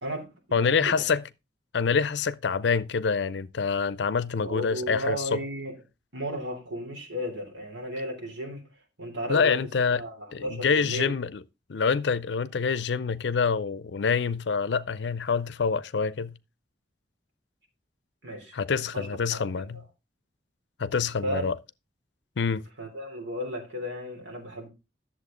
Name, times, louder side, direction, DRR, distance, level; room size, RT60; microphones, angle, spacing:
voice 1, 0.0-1.0 4.4-5.7 6.1-8.6 9.0-9.6 9.9-11.2 18.2-18.6 18.9-19.5 19.7-19.8 21.2-21.4 22.8-24.7, equal, 85° right, 3.3 m, -34 dB
voice 2, 0.5-1.2 1.7-5.4 9.3-10.0 10.3-11.4 11.7-16.3 18.5-19.8 20.8-21.5 22.4-22.7, left 5 dB, 75° left, 0.5 m, -26 dB
10.5 x 7.3 x 3.7 m
head